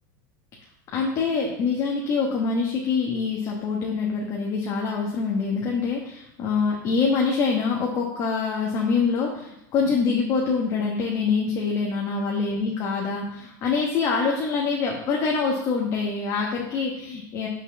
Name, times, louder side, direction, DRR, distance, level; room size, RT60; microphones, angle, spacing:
voice 1, 0.9-17.5, left 5 dB, 35° left, -1 dB, 1.2 m, -25 dB
5.9 x 4.0 x 6.2 m, 0.85 s
supercardioid pair, 150°, 10 cm